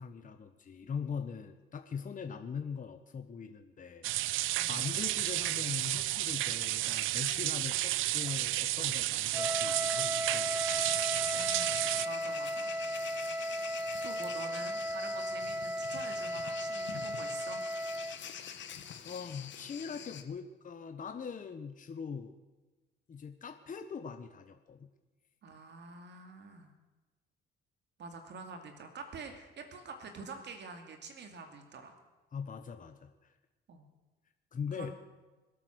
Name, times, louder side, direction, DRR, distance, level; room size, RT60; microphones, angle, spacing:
voice 1, 0.0-4.1 4.7-10.5 10.8-11.0 19.0-22.3 23.1-24.9 32.3-33.3 34.5-34.9, left 6 dB, 40° left, 7 dB, 1.2 m, -41 dB
sound 1, 4.0-12.1, right 16 dB, 85° right, 0.5 m, -32 dB
voice 2, 4.5-5.0 11.3-12.7 14.0-17.6 25.4-26.7 28.0-32.0 33.7-33.9 34.7-34.9, right 4 dB, 60° right, 5 dB, 2.6 m, -47 dB
Wind instrument woodwind instrument, 9.3-18.2, equal, 10° right, 0.5 m, -36 dB
sound 2, 10.7-20.2, left 8 dB, 65° left, 1.5 m, -45 dB
25.5 x 8.6 x 6.3 m, 1.2 s
cardioid pair, 90°, 20 cm